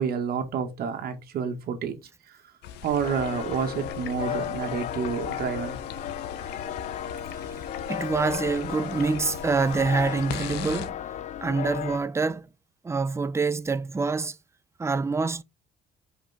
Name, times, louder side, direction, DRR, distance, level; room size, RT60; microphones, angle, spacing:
voice 1, 0.0-2.0 2.8-5.8, right 6 dB, 65° right, 2.0 m, -29 dB
sound 1, 2.6-10.9, left 9 dB, 85° left, 1.0 m, -39 dB
sound 2, 3.0-12.0, left 10 dB, 45° left, 0.4 m, -34 dB
voice 2, 7.9-11.0 11.4-12.5 12.8-14.4 14.8-15.4, right 4 dB, 15° right, 0.6 m, -26 dB
5.4 x 5.2 x 4.4 m
cardioid pair, 110°, 17 cm